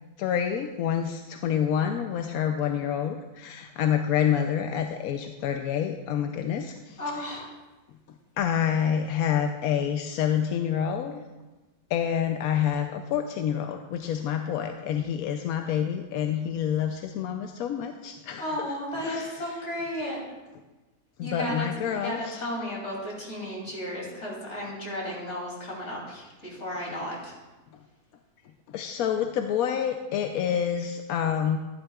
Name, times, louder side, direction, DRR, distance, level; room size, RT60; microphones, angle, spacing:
voice 1, 0.2-7.4 8.4-11.1 11.9-19.6 21.2-22.4 28.7-31.6, left 9 dB, 70° left, 5 dB, 0.9 m, -28 dB
voice 2, 7.0-7.5 18.4-20.2 21.2-27.3, equal, 40° left, -4 dB, 3.0 m, -34 dB
13.0 x 11.0 x 2.3 m, 1.1 s
omnidirectional pair, 1.8 m